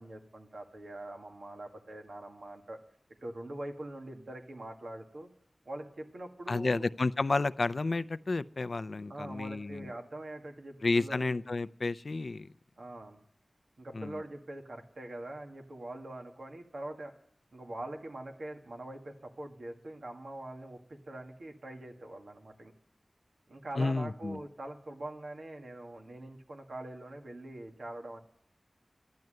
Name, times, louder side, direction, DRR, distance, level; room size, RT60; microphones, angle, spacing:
voice 1, 0.0-2.8 3.2-5.3 5.7-6.8 9.1-11.3 12.8-13.2 13.8-17.1 17.5-22.7 23.5-28.2, right 1 dB, 90° right, 1.9 m, -43 dB
voice 2, 6.5-9.9 10.8-12.5 13.9-14.2 23.8-24.4, left 3 dB, 65° left, 0.4 m, -31 dB
12.0 x 10.5 x 7.8 m
wide cardioid pair, 65°, 0 cm